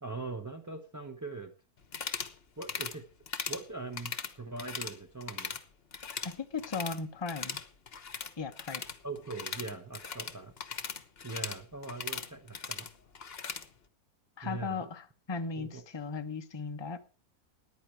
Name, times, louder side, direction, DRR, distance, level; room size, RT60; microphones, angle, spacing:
voice 1, 0.0-1.5 2.6-3.0 3.5-5.6 9.0-10.5 11.2-12.9 14.4-14.9 15.6-15.8, right 3 dB, 15° right, 1.0 m, -41 dB
sound 1, 1.8-2.3 2.6-3.0 3.3-3.6 3.9-5.0 5.2-5.6 5.9-7.0 7.3-13.7, left 6 dB, 45° left, 1.2 m, -39 dB
voice 2, 6.2-7.6 8.4-8.8 14.4-17.0, left 4 dB, 20° left, 0.8 m, -37 dB
14.5 x 10.5 x 4.7 m
omnidirectional pair, 1.6 m